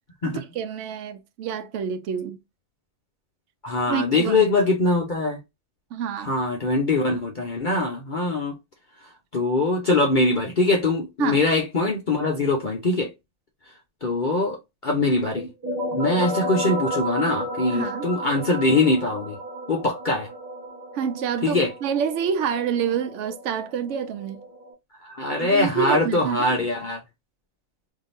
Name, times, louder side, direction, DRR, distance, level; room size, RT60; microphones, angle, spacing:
voice 1, 0.2-2.4 3.9-4.5 5.9-6.3 11.2-11.4 17.7-18.1 20.9-24.4 25.4-26.6, right 7 dB, 70° right, 0.9 m, -28 dB
voice 2, 3.6-5.4 6.2-8.5 9.3-13.1 14.0-14.6 14.8-15.5 15.9-19.4 19.7-20.3 21.4-21.7 25.1-27.0, left 2 dB, 40° left, 0.9 m, -22 dB
sound 1, 15.3-24.7, equal, 15° right, 1.4 m, -33 dB
3.7 x 2.8 x 2.6 m
omnidirectional pair, 1.4 m